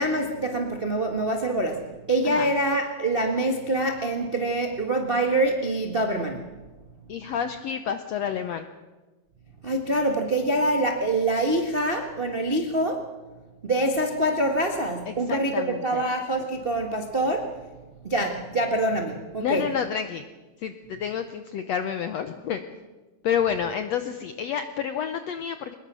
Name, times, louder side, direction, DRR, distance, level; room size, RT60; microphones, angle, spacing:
voice 1, 0.0-1.8 2.1-6.4 9.6-13.1 13.6-17.6 18.0-19.6, right 1 dB, 60° right, 3 dB, 0.5 m, -25 dB
voice 2, 7.1-8.6 15.1-16.0 19.4-20.3 20.6-22.6 23.2-25.7, left 8 dB, 90° left, 9 dB, 1.4 m, -29 dB
23.5 x 20.5 x 6.3 m, 1.2 s
omnidirectional pair, 4.2 m